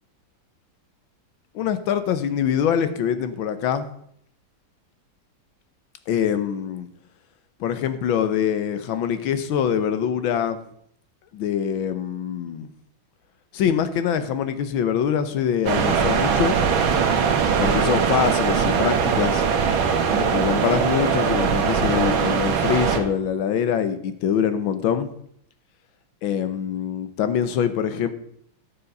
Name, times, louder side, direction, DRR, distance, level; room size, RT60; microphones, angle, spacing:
voice 1, 1.5-3.9 6.1-6.9 7.6-10.6 11.3-12.7 13.5-16.6 17.6-19.4 20.1-25.1 26.2-28.1, left 8 dB, 80° left, 11 dB, 1.6 m, -24 dB
sound 1, 15.7-23.0, right 6 dB, 85° right, 1.9 m, -21 dB
11.0 x 7.0 x 5.3 m, 0.68 s
omnidirectional pair, 2.2 m